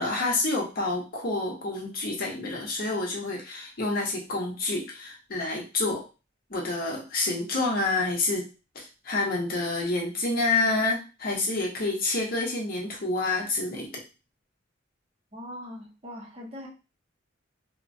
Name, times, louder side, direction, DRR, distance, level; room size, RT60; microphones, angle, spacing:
voice 1, 0.0-6.0 6.5-8.4 8.7-13.9, left 2 dB, 50° left, -1 dB, 0.8 m, -28 dB
voice 2, 15.3-16.7, left 1 dB, 30° right, -2 dB, 0.7 m, -41 dB
2.9 x 2.1 x 2.6 m, 0.31 s
head